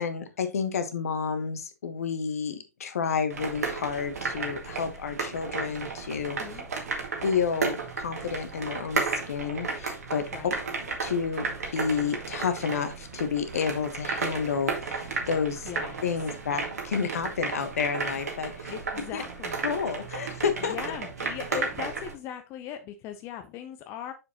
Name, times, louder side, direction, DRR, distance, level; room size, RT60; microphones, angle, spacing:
voice 1, 0.0-6.4 7.2-10.2 11.0-15.7 16.0-18.7 19.1-19.2 19.6-20.8, left 6 dB, 65° left, 9 dB, 1.2 m, -30 dB
sound 1, 3.3-22.1, right 4 dB, 70° right, 1.9 m, -33 dB
voice 2, 15.6-16.0 18.7-19.6 20.6-24.1, left 10 dB, 30° left, 7 dB, 0.7 m, -38 dB
6.6 x 6.3 x 2.9 m, 0.27 s
figure-of-eight pair, 105°, 9 cm